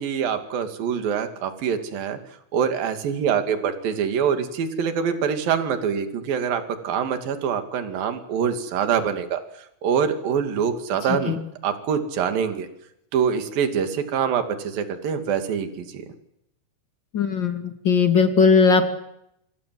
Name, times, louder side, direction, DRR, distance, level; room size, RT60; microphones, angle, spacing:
voice 1, 0.0-2.2 2.5-9.4 9.8-11.4 11.6-12.7 13.1-16.0, right 7 dB, 50° right, 7 dB, 3.9 m, -25 dB
voice 2, 17.1-18.9, left 5 dB, 35° left, 6 dB, 1.8 m, -19 dB
27.0 x 25.5 x 7.8 m, 0.79 s
omnidirectional pair, 5.6 m